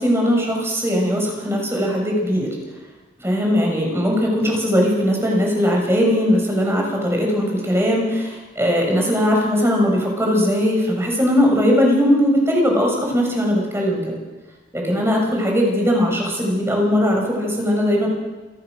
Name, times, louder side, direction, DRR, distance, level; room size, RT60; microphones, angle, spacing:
voice 1, 0.0-2.5 3.2-14.2 14.7-18.1, equal, 15° right, 0 dB, 6.5 m, -19 dB
27.5 x 15.0 x 6.5 m, 1.2 s
head